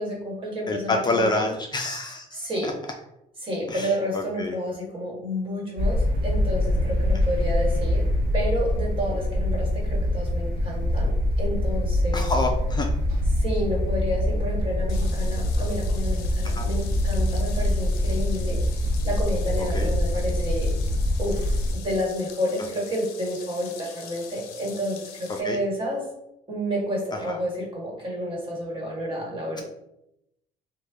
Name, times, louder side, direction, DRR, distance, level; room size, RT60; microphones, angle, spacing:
voice 1, 0.0-1.5 2.3-2.7 3.4-8.1 8.3-12.3 13.3-18.6 19.0-20.7 21.2-26.1 26.5-29.6, equal, 35° right, -3 dB, 1.4 m, -30 dB
voice 2, 0.7-2.7 3.7-4.6 12.1-12.9 16.5-16.7 19.7-19.9 25.4-25.6 27.3-27.4, left 2 dB, 30° left, 3 dB, 0.4 m, -27 dB
sound 1, 5.8-21.7, left 1 dB, 80° right, 0.7 m, -24 dB
sound 2, 14.9-25.4, left 7 dB, 90° left, 0.5 m, -44 dB
3.0 x 2.1 x 3.4 m, 0.83 s
cardioid pair, 85°, 15 cm